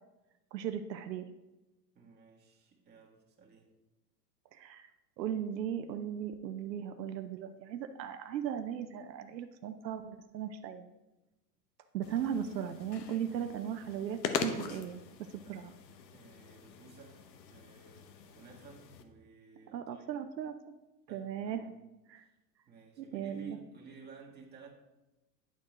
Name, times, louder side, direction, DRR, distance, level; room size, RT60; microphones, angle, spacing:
voice 1, 0.5-1.3 4.5-4.9 5.2-10.9 11.9-15.0 15.3-15.7 19.7-20.5 21.1-21.7 22.1-22.2 23.0-23.6, right 9 dB, 85° right, 8 dB, 0.6 m, -37 dB
voice 2, 2.0-3.8 13.3-13.5 16.1-20.1 21.1-21.7 22.2-22.4 22.7-24.7, right 4 dB, 20° right, -2 dB, 1.7 m, -55 dB
sound 1, 12.0-19.0, left 6 dB, 80° left, 0.9 m, -42 dB
10.5 x 4.3 x 3.1 m, 1.0 s
hypercardioid pair, 105°, 50 cm